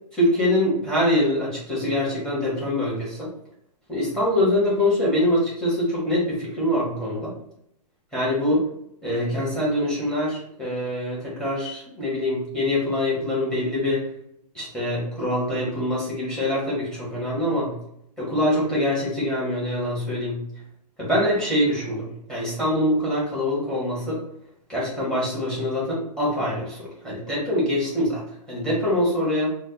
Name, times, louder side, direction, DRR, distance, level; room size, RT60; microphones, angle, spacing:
voice 1, 0.1-3.3 3.9-7.3 8.1-8.7 9.0-14.0 14.5-17.7 18.2-20.4 21.0-24.2 24.7-29.5, left 1 dB, 5° left, -6 dB, 1.3 m, -24 dB
4.2 x 2.3 x 2.9 m, 0.75 s
hypercardioid pair, 155°, 21 cm